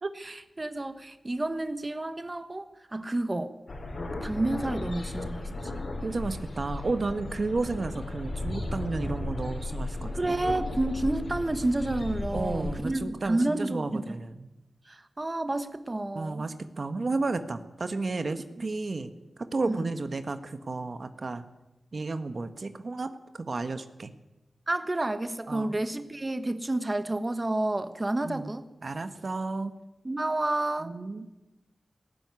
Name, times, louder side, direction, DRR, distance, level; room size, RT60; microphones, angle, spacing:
voice 1, 0.2-3.5 4.2-5.5 10.1-14.0 14.9-16.5 19.6-19.8 24.7-28.7 30.0-30.9, right 2 dB, 30° right, 1.3 m, -30 dB
sound 1, 3.7-12.8, left 2 dB, 60° left, 4.8 m, -35 dB
voice 2, 6.0-10.4 12.3-14.5 16.1-19.1 19.4-21.4 21.9-24.1 25.5-25.8 28.2-28.5 28.8-29.8 30.8-31.3, right 3 dB, 55° right, 1.3 m, -32 dB
18.5 x 15.5 x 9.6 m
wide cardioid pair, 80°, 0 cm